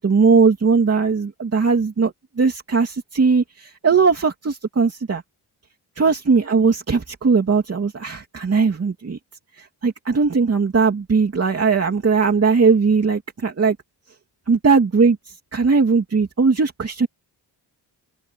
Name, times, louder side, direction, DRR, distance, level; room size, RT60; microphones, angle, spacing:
voice 1, 0.0-5.2 6.0-9.2 9.6-13.8 14.5-17.1, right 5 dB, 35° right, 2.9 m, -19 dB
open air
wide cardioid pair, 155°, 43 cm